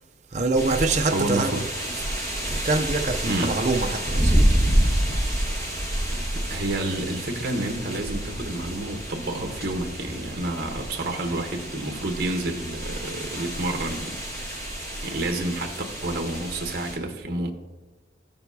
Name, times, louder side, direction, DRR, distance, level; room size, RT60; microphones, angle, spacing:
voice 1, 0.3-1.7 2.3-4.4, right 3 dB, 40° right, 0.5 m, -25 dB
sound 1, 0.5-17.0, right 1 dB, 15° left, 1.5 m, -28 dB
voice 2, 1.1-1.5 3.3-3.5 6.5-14.6 15.0-15.8 16.0-17.5, right 2 dB, 55° right, 1.0 m, -29 dB
15.0 x 6.9 x 2.7 m
head